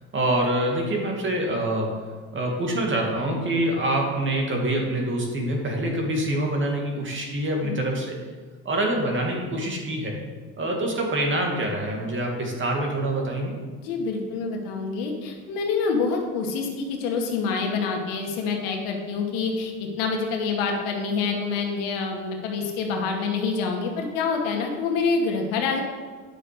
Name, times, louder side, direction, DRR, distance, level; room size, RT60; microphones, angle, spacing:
voice 1, 0.1-8.2 8.6-10.2 10.6-13.5, right 1 dB, 35° right, 0 dB, 2.6 m, -25 dB
voice 2, 13.8-25.8, left 4 dB, 80° left, 2 dB, 1.9 m, -27 dB
9.8 x 6.5 x 5.3 m, 1.5 s
supercardioid pair, 90°, 33 cm